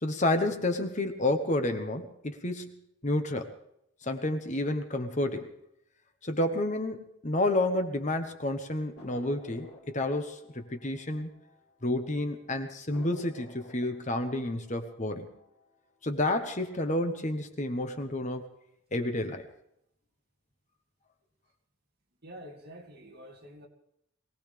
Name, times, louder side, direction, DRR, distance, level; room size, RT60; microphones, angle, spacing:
voice 1, 0.0-3.5 4.0-5.5 6.2-11.3 11.8-15.3 16.0-18.5 18.9-19.5, left 1 dB, 35° left, 6 dB, 1.2 m, -30 dB
sound 1, 9.0-12.0 12.3-12.4 12.9-15.9 16.3-16.9, left 1 dB, 50° left, 3.6 m, -53 dB
voice 2, 22.2-23.7, equal, 50° right, 1 dB, 2.4 m, -47 dB
22.5 x 17.5 x 3.4 m, 0.76 s
head